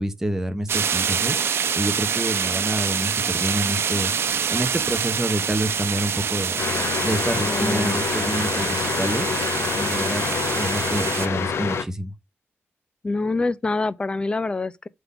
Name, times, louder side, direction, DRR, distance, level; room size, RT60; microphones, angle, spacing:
voice 1, 0.0-1.4 1.8-4.1 4.5-6.6 7.0-9.3 9.7-10.2 10.6-12.1, right 1 dB, 10° right, 1.0 m, -27 dB
sound 1, 0.7-11.3, right 7 dB, 65° right, 0.9 m, -26 dB
sound 2, 6.1-11.4, left 4 dB, 45° left, 1.3 m, -46 dB
sound 3, 6.6-11.8, left 6 dB, 75° left, 0.9 m, -26 dB
voice 2, 7.5-8.0 13.0-14.9, left 3 dB, 20° left, 0.5 m, -25 dB
7.9 x 3.7 x 5.6 m
wide cardioid pair, 155°, 4 cm